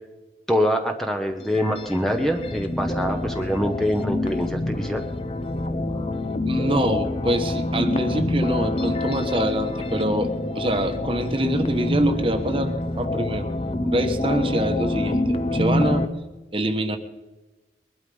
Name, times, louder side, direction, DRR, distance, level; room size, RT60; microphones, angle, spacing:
voice 1, 0.5-5.0, equal, ahead, 4 dB, 1.0 m, -24 dB
sound 1, 1.4-16.0, left 1 dB, 30° left, 0.8 m, -26 dB
voice 2, 6.4-13.5 13.8-16.1 16.5-17.0, right 1 dB, 30° right, 7 dB, 1.3 m, -25 dB
21.5 x 12.0 x 5.5 m, 1.1 s
head